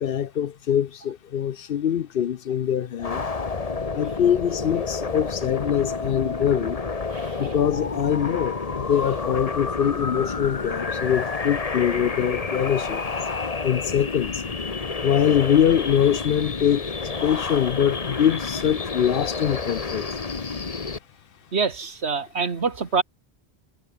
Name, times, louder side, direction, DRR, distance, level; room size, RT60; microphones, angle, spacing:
voice 1, 0.0-3.2 3.9-6.8 7.4-13.0 13.6-14.4 15.0-16.8 17.2-20.1, left 9 dB, 60° left, 0.8 m, -23 dB
sound 1, 3.0-21.0, left 4 dB, 35° left, 1.3 m, -29 dB
voice 2, 21.5-23.0, right 5 dB, 75° right, 2.1 m, -25 dB
omnidirectional pair, 1.1 m